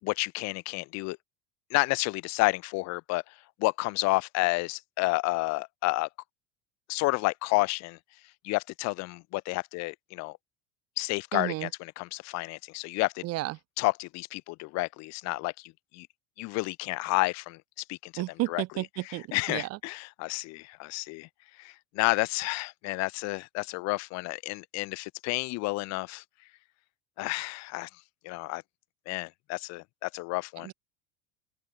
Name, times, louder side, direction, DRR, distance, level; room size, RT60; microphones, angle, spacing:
voice 1, 0.0-1.2 1.7-6.1 6.9-8.0 8.4-10.4 11.0-13.2 13.8-16.1 16.4-17.6 17.9-21.3 21.6-26.2 27.2-27.9 28.2-28.6 29.1-30.7, left 24 dB, 65° left, 4.7 m, -30 dB
voice 2, 11.3-11.7 13.2-13.6 18.2-19.8 30.6-30.7, right 19 dB, 55° right, 2.2 m, -32 dB
open air
supercardioid pair, 110°, 30 cm